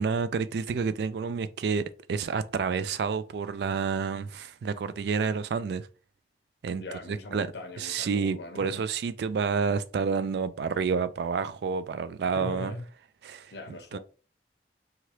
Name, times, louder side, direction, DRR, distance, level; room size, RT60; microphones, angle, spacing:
voice 1, 0.0-5.9 6.6-7.5 7.8-12.7 13.2-13.5 13.9-14.0, right 5 dB, 70° right, 0.3 m, -29 dB
voice 2, 6.8-8.8 12.3-12.9 13.5-14.0, left 2 dB, 70° left, 0.6 m, -40 dB
3.1 x 2.4 x 2.9 m
head